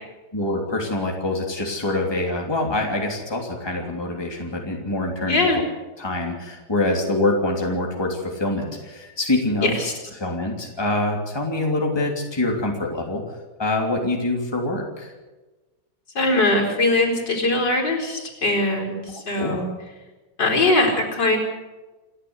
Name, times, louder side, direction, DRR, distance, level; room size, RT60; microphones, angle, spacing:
voice 1, 0.3-5.5 6.0-9.7 10.2-13.2 13.6-15.1 19.4-19.6, left 2 dB, 10° left, 0 dB, 3.0 m, -25 dB
voice 2, 5.3-5.6 9.6-9.9 16.1-19.7 20.4-21.4, left 2 dB, 65° left, 1 dB, 5.0 m, -21 dB
28.5 x 11.5 x 8.2 m, 1.2 s
omnidirectional pair, 2.1 m